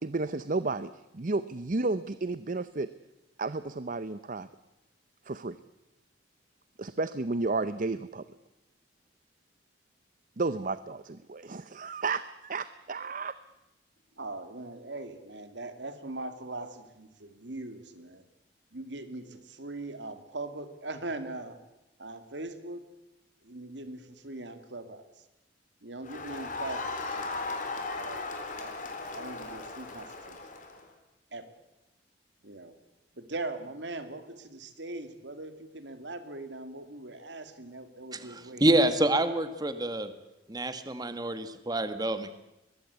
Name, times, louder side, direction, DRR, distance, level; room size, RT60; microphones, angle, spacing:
voice 1, 0.0-2.9 3.4-4.5 5.2-5.6 6.8-8.2 10.4-13.4, right 3 dB, 45° right, 14 dB, 0.7 m, -32 dB
voice 2, 14.2-18.2 18.7-21.6 22.0-22.9 23.4-25.2 25.8-27.3 27.9-28.3 28.6-28.8 29.1-30.4 31.3-31.5 32.4-32.8 33.1-38.7, right 2 dB, 75° right, 9 dB, 2.5 m, -41 dB
Crowd, 26.0-30.8, left 3 dB, 45° left, 3.8 m, -37 dB
voice 3, 38.1-40.1 40.5-42.3, right 1 dB, 20° right, 10 dB, 1.5 m, -27 dB
22.5 x 21.5 x 8.3 m, 0.95 s
head